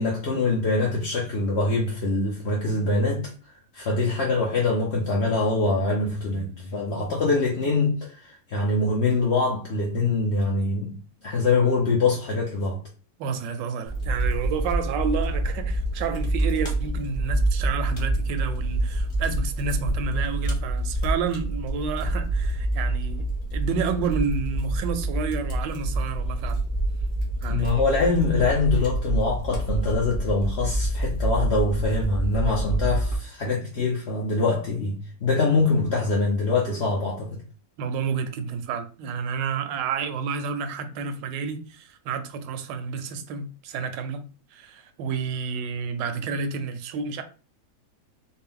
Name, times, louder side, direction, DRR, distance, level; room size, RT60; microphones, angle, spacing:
voice 1, 0.0-3.3 3.7-11.0 11.2-12.8 27.5-37.4, left 3 dB, 60° left, 0.7 m, -24 dB
voice 2, 13.2-23.3 23.5-26.6 27.4-27.8 37.8-44.2 44.5-47.2, right 5 dB, 85° right, 1.3 m, -30 dB
Fire, 13.9-33.1, right 1 dB, 30° left, 1.3 m, -27 dB
4.2 x 2.1 x 3.6 m
omnidirectional pair, 1.9 m